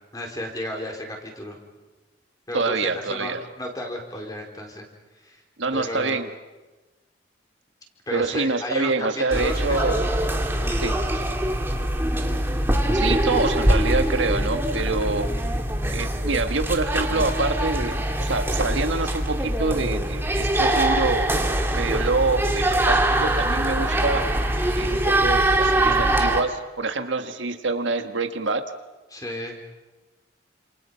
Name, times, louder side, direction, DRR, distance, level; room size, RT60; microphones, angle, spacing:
voice 1, 0.1-1.6 2.5-4.8 5.2-5.4 5.7-6.2 8.1-10.0 10.5-11.2 29.1-29.6, left 1 dB, 20° left, 1 dB, 4.4 m, -33 dB
voice 2, 2.5-3.4 5.6-6.3 8.1-10.1 10.8-10.9 12.9-15.3 15.9-21.3 21.7-24.2 24.7-28.7, right 3 dB, 90° right, 7 dB, 1.6 m, -26 dB
sound 1, 9.3-26.4, right 1 dB, 15° right, 2.0 m, -23 dB
29.5 x 27.5 x 5.8 m, 1.2 s
head